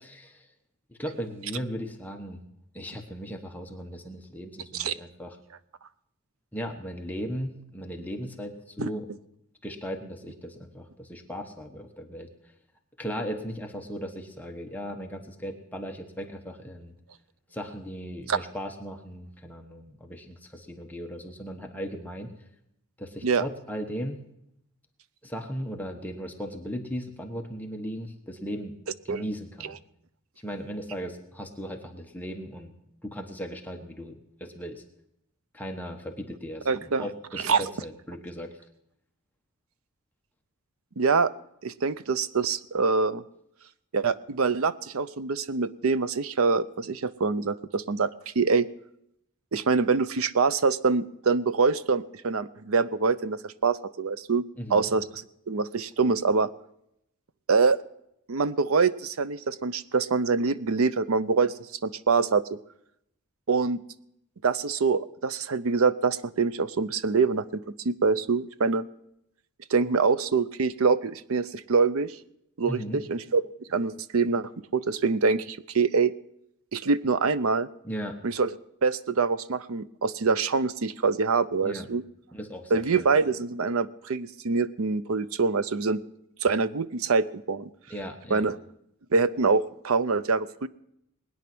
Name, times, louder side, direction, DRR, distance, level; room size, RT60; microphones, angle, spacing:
voice 1, 0.9-2.4 2.7-5.4 6.5-9.1 9.6-12.3 13.0-17.0 17.5-22.3 23.0-24.2 25.2-28.7 29.0-29.8 30.4-32.7 33.0-34.8 35.5-38.5 54.6-54.9 72.7-73.0 77.8-78.2 81.6-81.9 82.3-83.1 87.9-88.5, equal, 10° left, 2 dB, 1.2 m, -37 dB
voice 2, 36.7-37.1 37.4-37.6 41.0-41.3 41.6-43.2 43.9-48.7 49.5-54.4 54.7-55.0 55.5-56.5 57.5-57.8 58.3-61.5 61.8-62.6 63.5-63.8 64.4-68.9 69.7-72.2 72.6-73.4 73.7-76.1 76.7-77.7 78.2-78.5 78.8-82.0 82.7-86.0 86.4-87.7 88.3-88.6 89.1-90.7, right 4 dB, 70° right, 15 dB, 0.6 m, -25 dB
20.5 x 9.8 x 6.1 m, 0.79 s
head